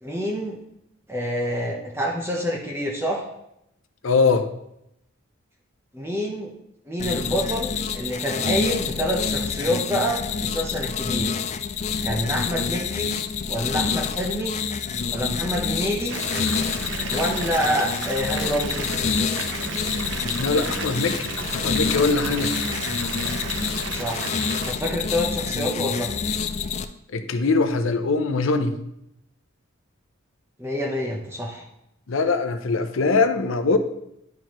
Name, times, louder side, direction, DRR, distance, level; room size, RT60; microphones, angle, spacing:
voice 1, 0.0-0.6 1.1-3.2 5.9-6.5 6.9-11.4 12.0-13.2 13.5-14.5 15.1-16.2 17.1-18.9 23.9-24.4 24.7-26.1 30.6-31.6, equal, 10° right, -2 dB, 0.7 m, -27 dB
voice 2, 4.0-4.5 20.4-22.6 27.1-28.7 32.1-33.8, left 3 dB, 75° left, 8 dB, 0.6 m, -22 dB
sound 1, 7.0-26.8, left 6 dB, 35° left, 0.3 m, -27 dB
Water tap faucet / Bathtub (filling or washing) / Fill (with liquid), 16.1-24.7, right 5 dB, 60° right, 0.6 m, -33 dB
10.5 x 4.5 x 3.0 m, 0.81 s
head